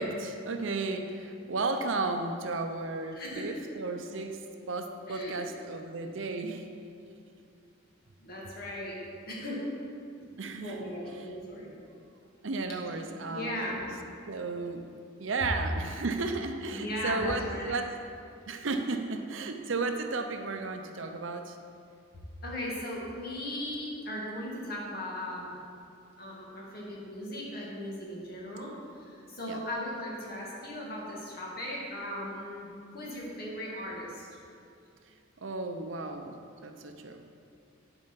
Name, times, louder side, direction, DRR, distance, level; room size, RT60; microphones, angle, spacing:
voice 1, 0.0-4.4 4.7-6.7 10.4-11.3 12.4-13.7 14.3-14.9 15.2-18.0 18.5-21.6 29.4-29.6 35.4-37.2, right 3 dB, 70° right, 6 dB, 0.7 m, -34 dB
voice 2, 3.1-3.5 5.1-5.4 8.2-9.0 9.3-9.6 10.6-11.7 13.3-13.8 16.7-17.7 22.4-25.5 26.2-34.3, left 1 dB, 50° left, -4 dB, 2.0 m, -37 dB
11.0 x 4.6 x 5.8 m, 2.5 s
head